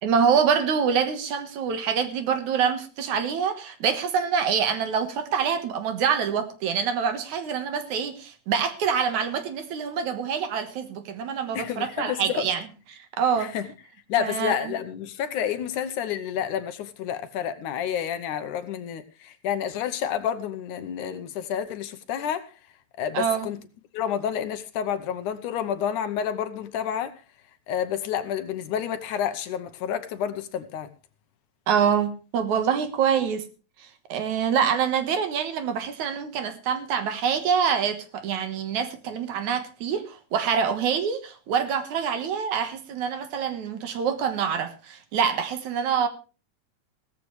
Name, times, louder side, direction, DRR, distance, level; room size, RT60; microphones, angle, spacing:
voice 1, 0.0-12.6 13.2-13.5 14.2-14.7 23.1-23.5 31.7-33.4 34.1-46.1, right 7 dB, 65° right, 2.6 m, -25 dB
voice 2, 11.5-12.5 13.4-13.7 14.1-22.5 23.0-23.6 23.9-27.1 27.7-30.9, left 9 dB, 70° left, 2.3 m, -29 dB
16.5 x 14.5 x 3.2 m
omnidirectional pair, 3.9 m